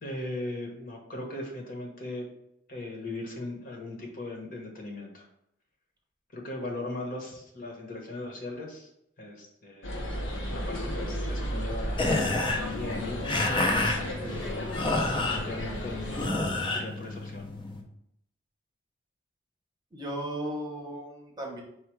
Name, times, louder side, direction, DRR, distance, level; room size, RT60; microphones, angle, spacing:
voice 1, 0.0-2.2 2.7-5.2 6.3-8.9 9.2-9.9 10.7-12.1 12.5-13.4 14.3-14.7 15.3-16.4 16.7-17.5, left 2 dB, 50° left, 0 dB, 1.0 m, -38 dB
sound 1, 9.8-16.3, equal, 75° left, 0.8 m, -34 dB
sound 2, 11.9-17.8, left 2 dB, 25° left, 0.5 m, -29 dB
voice 2, 14.2-14.6 19.9-21.6, right 1 dB, 20° right, -1 dB, 0.9 m, -36 dB
4.4 x 2.3 x 4.5 m, 0.76 s
head